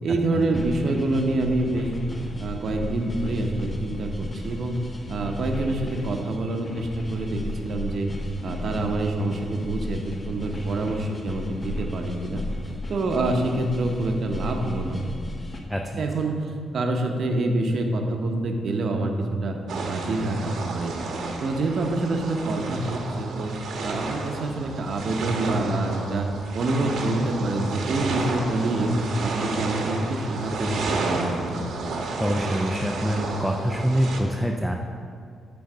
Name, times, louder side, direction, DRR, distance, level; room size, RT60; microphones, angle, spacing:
voice 1, 0.0-1.9 2.4-4.8 5.1-8.1 8.4-12.4 12.9-15.0 16.0-19.6 19.9-20.9 21.4-23.5 23.8-26.3 26.5-28.9 29.2-31.6, right 2 dB, 50° right, 3 dB, 0.8 m, -26 dB
sound 1, 0.5-15.6, left 1 dB, 25° left, 0.9 m, -35 dB
voice 2, 15.7-16.0 32.2-34.8, equal, ahead, 2 dB, 0.4 m, -25 dB
sound 2, 19.7-34.2, right 3 dB, 70° right, 1.1 m, -31 dB
9.6 x 3.9 x 6.6 m, 2.2 s
cardioid pair, 155°, 0 cm